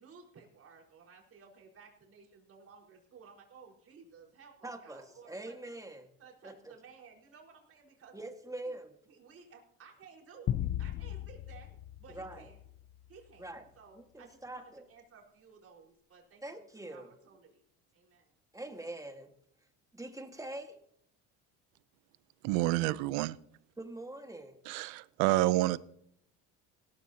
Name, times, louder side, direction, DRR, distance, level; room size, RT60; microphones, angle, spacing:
voice 1, 0.0-5.6 6.2-8.2 8.6-8.8 9.0-12.6 13.1-16.6 16.9-17.6 17.9-18.3, right 5 dB, 45° right, 0 dB, 4.7 m, -56 dB
voice 2, 4.6-6.1 6.4-6.7 8.1-8.9 12.1-12.4 13.4-13.6 13.9-14.8 16.4-17.1 18.5-19.3 19.9-20.8 23.8-24.6, right 1 dB, 10° right, 6 dB, 1.7 m, -44 dB
sound 1, 10.5-13.1, left 11 dB, 45° left, 0.5 m, -37 dB
voice 3, 22.4-23.4 24.7-25.8, right 17 dB, 90° right, 19 dB, 0.6 m, -28 dB
18.0 x 13.0 x 2.9 m, 0.71 s
supercardioid pair, 105°, 33 cm